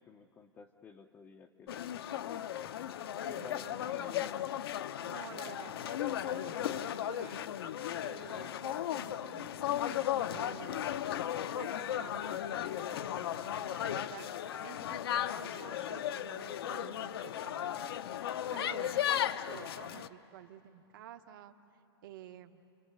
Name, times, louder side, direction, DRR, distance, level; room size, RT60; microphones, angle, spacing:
voice 1, 0.0-2.4 3.3-4.4, left 6 dB, 10° left, 2 dB, 0.5 m, -52 dB
sound 1, 1.7-20.1, left 11 dB, 65° left, 0.7 m, -36 dB
voice 2, 3.2-4.0 5.0-6.0 6.3-7.5 8.0-10.9 11.5-14.3 14.6-17.9 18.2-21.5 22.0-22.6, right 11 dB, 50° right, 8 dB, 1.1 m, -51 dB
30.0 x 23.5 x 6.7 m, 3.0 s
hypercardioid pair, 160°, 14 cm